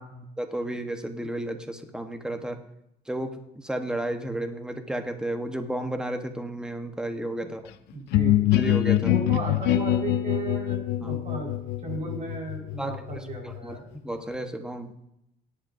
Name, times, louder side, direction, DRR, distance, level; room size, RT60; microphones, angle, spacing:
voice 1, 0.4-2.6 3.1-7.6 8.6-9.2 11.0-11.2 12.8-14.9, right 1 dB, 5° right, 6 dB, 1.2 m, -33 dB
voice 2, 7.9-8.4 9.0-11.5 11.8-13.8, right 3 dB, 45° right, 0 dB, 4.8 m, -35 dB
sound 1, 8.1-13.8, left 13 dB, 90° left, 0.5 m, -25 dB
17.0 x 10.5 x 2.7 m, 0.82 s
cardioid pair, 110°, 17 cm